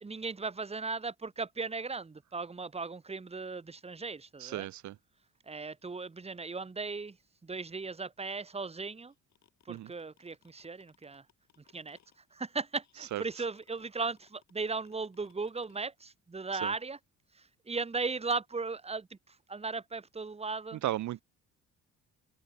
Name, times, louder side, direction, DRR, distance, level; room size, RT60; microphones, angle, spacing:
voice 1, 0.0-4.7 5.5-7.2 7.4-9.1 9.6-11.2 11.7-12.0 12.3-17.0 17.3-20.8, right 4 dB, 20° right, 1.5 m, -37 dB
voice 2, 4.4-5.0 9.7-9.9 13.1-13.2 16.6-16.7 20.8-21.2, right 14 dB, 70° right, 0.9 m, -35 dB
sound 1, 9.1-15.8, left 10 dB, 65° left, 6.1 m, -66 dB
open air
cardioid pair, 90°, 30 cm